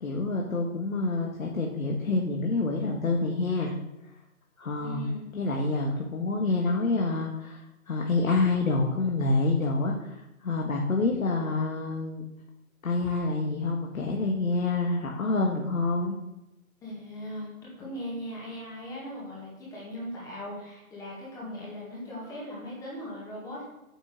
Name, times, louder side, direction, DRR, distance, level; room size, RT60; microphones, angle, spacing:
voice 1, 0.0-3.8 4.6-12.2 12.8-16.2, left 3 dB, 65° left, 0 dB, 1.8 m, -27 dB
voice 2, 4.8-5.3 16.8-23.6, left 1 dB, 5° left, -6 dB, 1.8 m, -39 dB
9.0 x 6.4 x 6.5 m, 0.91 s
figure-of-eight pair, 155°, 43 cm